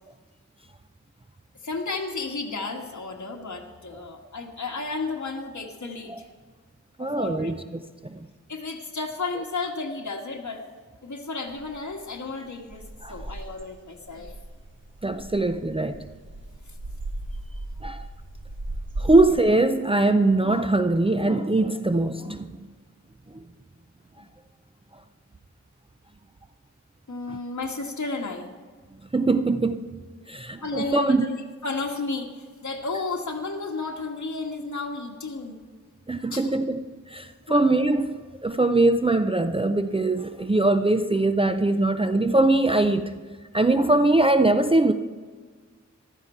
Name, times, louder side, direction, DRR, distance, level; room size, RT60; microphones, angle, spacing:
voice 1, 1.6-6.3 7.0-7.5 8.5-10.6 11.0-12.8 13.1-14.3 27.1-28.5 30.6-32.3 32.6-35.6 36.3-36.5 37.5-37.6, left 3 dB, 70° left, 1.6 m, -32 dB
voice 2, 7.0-8.3 13.0-13.3 15.0-16.0 17.8-18.1 19.0-22.5 23.3-23.4 27.3-27.4 29.1-29.8 30.3-31.3 36.1-43.2 43.5-44.9, right 2 dB, 20° right, 0.5 m, -22 dB
sound 1, 11.5-19.4, right 1 dB, 40° right, 1.5 m, -37 dB
14.5 x 13.0 x 4.4 m
wide cardioid pair, 85°, 31 cm